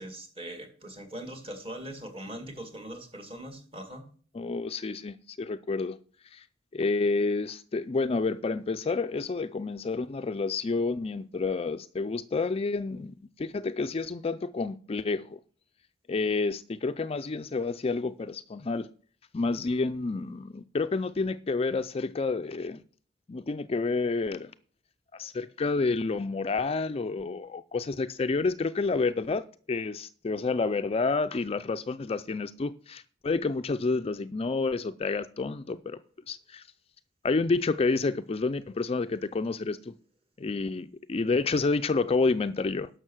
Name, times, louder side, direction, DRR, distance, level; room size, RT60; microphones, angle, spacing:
voice 1, 0.0-4.0, right 1 dB, 30° right, 2.1 m, -41 dB
voice 2, 4.3-6.0 6.3-6.4 6.7-15.4 16.1-18.9 19.3-22.8 23.3-24.5 25.1-36.0 36.3-36.6 37.2-39.9 40.4-42.9, left 3 dB, 30° left, 0.4 m, -29 dB
11.0 x 6.4 x 6.2 m
head